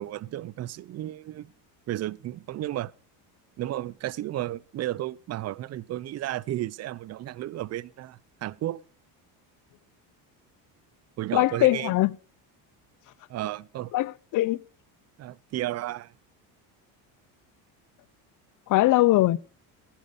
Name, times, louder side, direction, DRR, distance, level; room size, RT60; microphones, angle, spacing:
voice 1, 0.0-1.5 1.9-2.9 3.6-8.8 11.2-11.9 13.3-13.9 15.2-16.1, right 14 dB, 40° right, 0.5 m, -33 dB
voice 2, 11.3-12.1 13.9-14.6 18.7-19.4, left 17 dB, 50° left, 0.6 m, -21 dB
15.5 x 10.5 x 5.2 m
cardioid pair, 135°, 41 cm